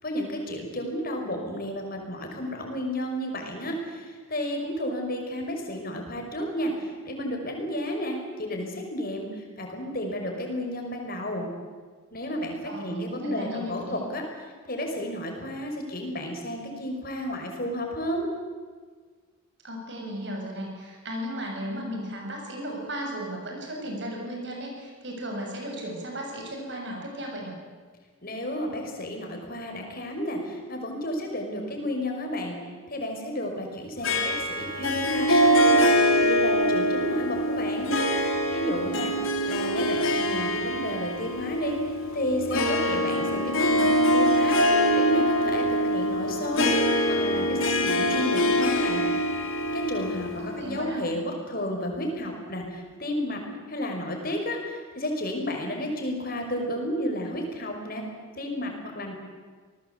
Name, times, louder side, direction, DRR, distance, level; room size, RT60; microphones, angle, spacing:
voice 1, 0.0-11.5 12.1-18.3 28.2-32.6 32.9-35.9 36.2-37.9 38.5-39.1 39.5-41.8 42.1-46.7 47.1-49.0 49.7-53.4 53.7-58.0 58.4-59.1, left 1 dB, 45° left, 3 dB, 5.6 m, -32 dB
voice 2, 12.6-14.1 19.6-27.6 50.4-51.1, equal, 55° right, 1 dB, 6.9 m, -35 dB
Harp, 34.0-50.8, equal, 70° left, 3.6 m, -24 dB
27.5 x 20.0 x 8.3 m, 1.5 s
head